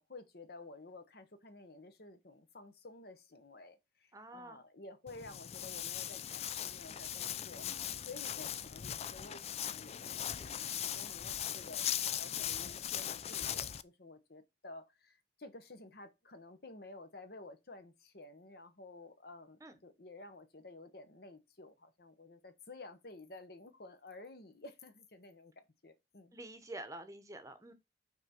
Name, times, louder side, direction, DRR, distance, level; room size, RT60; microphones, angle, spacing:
voice 1, 0.0-7.7 8.0-26.4, left 2 dB, 60° left, 1.0 m, -52 dB
voice 2, 4.1-4.6 19.6-19.7 26.3-27.7, right 1 dB, 20° right, 0.9 m, -47 dB
Walk footsteps, 5.1-13.8, left 10 dB, 35° left, 0.3 m, -39 dB
5.9 x 4.6 x 4.4 m
head